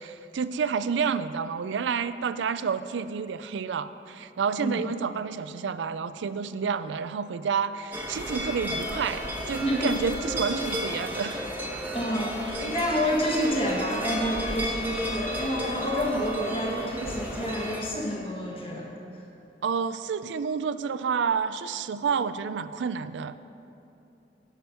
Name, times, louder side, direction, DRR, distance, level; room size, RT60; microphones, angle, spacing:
voice 1, 0.0-11.5 19.6-23.4, right 6 dB, 90° right, 13 dB, 0.4 m, -29 dB
sound 1, 7.9-17.8, equal, 10° right, 1.1 m, -33 dB
voice 2, 9.6-9.9 11.9-19.2, equal, 30° left, -2 dB, 1.5 m, -29 dB
11.5 x 7.1 x 5.8 m, 2.8 s
head